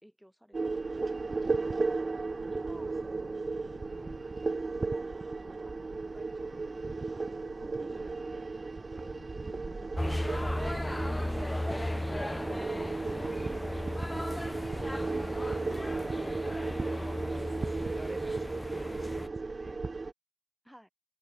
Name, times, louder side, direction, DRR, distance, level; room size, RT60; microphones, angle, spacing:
voice 1, 0.0-2.0 2.5-3.1 4.6-9.2 9.7-11.1 16.8-17.3 20.6-20.9, equal, 5° right, 2.1 m, -57 dB
sound 1, 0.5-20.1, right 3 dB, 70° right, 0.4 m, -35 dB
sound 2, 1.4-16.7, left 3 dB, 60° left, 1.2 m, -57 dB
voice 2, 3.0-3.6 3.9-4.2 15.3-15.9 17.2-19.8, right 1 dB, 25° right, 1.3 m, -50 dB
sound 3, 10.0-19.3, left 1 dB, 20° left, 0.4 m, -35 dB
wide cardioid pair, 70°, 0 cm